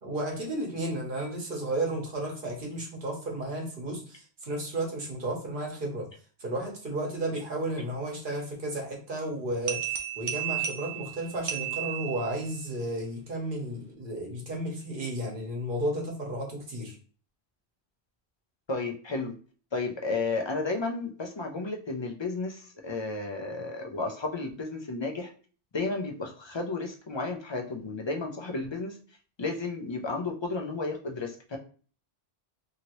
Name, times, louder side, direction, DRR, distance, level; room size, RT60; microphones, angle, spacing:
voice 1, 0.0-6.1 6.4-17.0, right 1 dB, 55° right, -1 dB, 1.0 m, -33 dB
sound 1, 9.7-12.6, right 10 dB, 85° right, 0.9 m, -34 dB
voice 2, 18.7-19.3 19.7-25.3 25.7-29.0 29.4-31.6, left 3 dB, 50° left, 2 dB, 0.3 m, -32 dB
2.8 x 2.8 x 2.9 m, 0.41 s
omnidirectional pair, 1.1 m